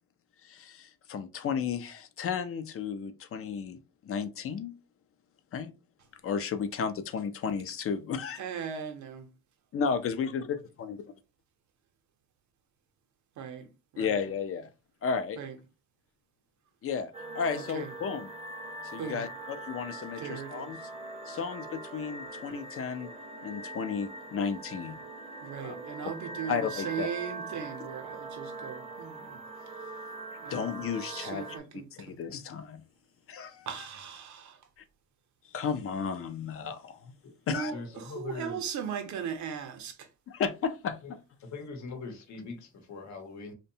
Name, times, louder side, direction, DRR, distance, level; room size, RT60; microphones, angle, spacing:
voice 1, 0.4-3.8 4.0-4.7 5.5-5.7 6.2-8.4 9.7-11.0 14.0-14.7 15.0-15.4 16.8-18.3 18.9-20.8 21.3-23.1 23.4-25.0 25.6-25.8 26.5-27.1 30.5-31.5 31.9-32.8 33.3-33.7 35.5-37.1 37.5-37.7 40.3-41.2, left 6 dB, 50° left, 0.5 m, -33 dB
voice 2, 8.4-9.3 13.4-13.7 13.9-14.2 15.4-15.6 17.5-17.9 19.0-19.2 20.2-20.7 25.4-29.4 30.4-32.1 33.7-34.6 37.5-40.1, right 7 dB, 70° right, 0.7 m, -38 dB
sound 1, 17.1-31.6, right 2 dB, 20° right, 0.6 m, -42 dB
voice 3, 37.7-38.6 41.0-41.1 41.4-43.5, left 4 dB, 70° left, 0.8 m, -41 dB
2.7 x 2.1 x 2.6 m
cardioid pair, 90°, 30 cm